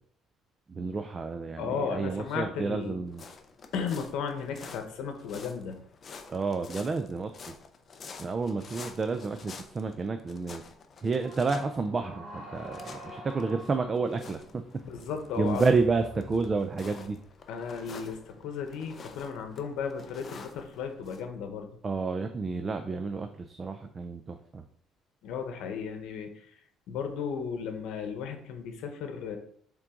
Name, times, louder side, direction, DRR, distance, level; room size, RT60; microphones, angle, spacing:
voice 1, 0.7-3.2 6.3-7.3 8.2-10.6 11.0-14.4 15.4-17.2 21.8-24.6, right 4 dB, 25° right, 7 dB, 0.4 m, -30 dB
voice 2, 1.6-2.9 3.7-5.8 14.8-15.6 17.5-21.7 25.2-26.5 26.9-29.4, left 6 dB, 75° left, 5 dB, 1.1 m, -35 dB
sound 1, 3.1-21.2, left 4 dB, 30° left, 0.6 m, -49 dB
sound 2, 11.2-17.2, equal, 65° right, 2.1 m, -47 dB
7.3 x 3.8 x 3.8 m, 0.62 s
cardioid pair, 160°, 0 cm